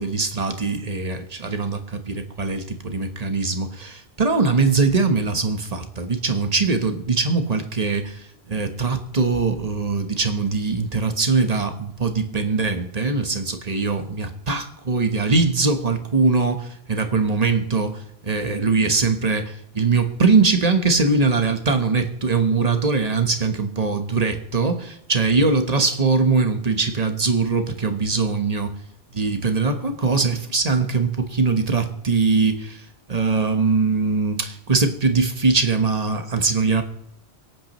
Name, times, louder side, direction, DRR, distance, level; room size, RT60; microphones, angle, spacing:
voice 1, 0.0-28.7 29.1-36.8, right 4 dB, 35° right, 7 dB, 1.2 m, -22 dB
24.5 x 8.8 x 3.1 m, 0.81 s
omnidirectional pair, 1.1 m